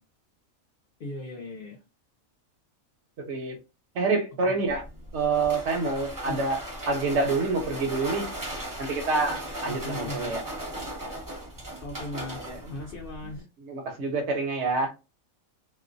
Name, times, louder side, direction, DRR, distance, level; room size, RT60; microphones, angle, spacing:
voice 1, 1.0-1.8 6.3-6.4 9.7-10.3 11.8-13.5, left 1 dB, 55° left, -2 dB, 0.7 m, -38 dB
voice 2, 3.2-3.6 3.9-4.9 5.1-8.3 8.8-10.4 12.4-12.6 13.6-14.9, right 3 dB, 65° right, 4 dB, 0.8 m, -27 dB
sound 1, 4.7-13.4, right 1 dB, 20° right, 0.6 m, -37 dB
2.4 x 2.1 x 2.5 m, 0.28 s
omnidirectional pair, 1.4 m